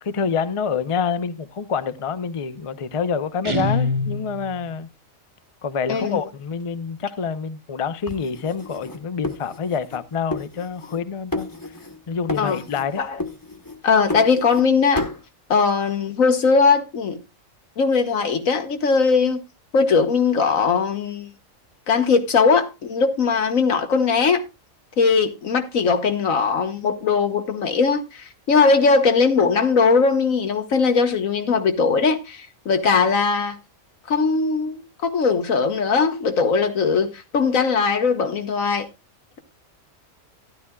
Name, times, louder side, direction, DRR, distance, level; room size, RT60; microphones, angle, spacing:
voice 1, 0.0-4.9 5.6-11.5 12.1-13.0, left 6 dB, 35° left, 0.5 m, -27 dB
Guitar, 3.4-4.7, left 2 dB, 25° right, 1.2 m, -25 dB
voice 2, 5.9-6.2 12.4-12.6 13.0-13.2 13.8-15.1 15.5-17.2 17.8-19.4 19.7-21.3 21.9-24.4 25.0-33.6 34.1-38.9, left 5 dB, 85° left, 1.7 m, -20 dB
sound 1, 8.1-10.0 10.3-11.0 11.3-12.0 12.3-12.9 13.2-14.7 15.0-15.2, left 2 dB, 15° left, 1.0 m, -32 dB
12.5 x 11.0 x 2.3 m
omnidirectional pair, 1.4 m